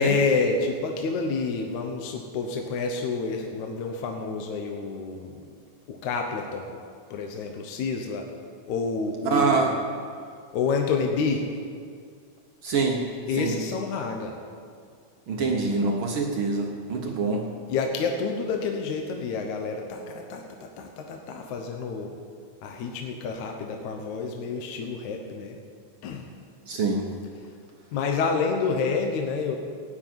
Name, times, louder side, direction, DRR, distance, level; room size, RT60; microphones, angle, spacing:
voice 1, 0.0-5.4 5.9-6.7 7.1-8.3 8.7-9.7 10.5-11.5 13.3-14.4 15.3-15.6 17.0-17.1 17.7-22.1 22.6-25.6 26.0-26.3 27.9-29.6, left 4 dB, 70° left, 3 dB, 2.3 m, -28 dB
voice 2, 9.2-9.7 12.6-13.0 13.3-13.5 15.3-17.5 26.7-27.1, right 4 dB, 70° right, 1 dB, 1.2 m, -25 dB
17.0 x 6.4 x 9.3 m, 2.2 s
omnidirectional pair, 3.7 m